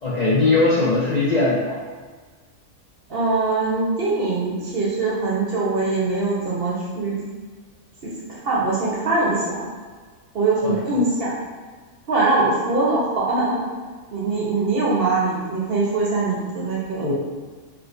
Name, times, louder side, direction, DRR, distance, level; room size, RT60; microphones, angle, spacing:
voice 1, 0.0-1.8 10.6-10.8 17.0-17.1, left 3 dB, 55° left, -9 dB, 0.5 m, -20 dB
voice 2, 3.1-7.2 8.0-8.1 8.4-9.7 10.3-11.3 12.1-13.7 14.1-17.1, right 3 dB, 55° right, -5 dB, 0.8 m, -22 dB
4.6 x 2.0 x 2.5 m, 1.5 s
omnidirectional pair, 1.3 m